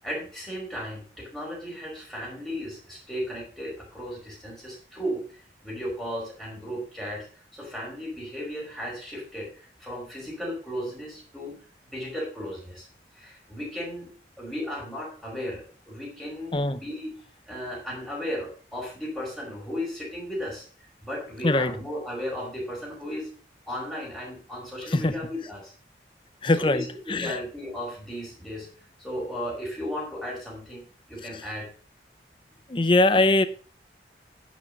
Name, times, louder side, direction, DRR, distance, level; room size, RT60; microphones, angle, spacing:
voice 1, 0.0-7.3 7.5-11.6 11.9-12.9 13.1-14.1 14.4-17.1 17.5-23.3 23.7-25.7 26.6-28.7 29.0-31.7, equal, ahead, -4 dB, 5.3 m, -35 dB
voice 2, 26.4-27.4 32.7-33.5, left 2 dB, 30° left, 11 dB, 0.6 m, -22 dB
10.5 x 6.3 x 5.3 m, 0.42 s
head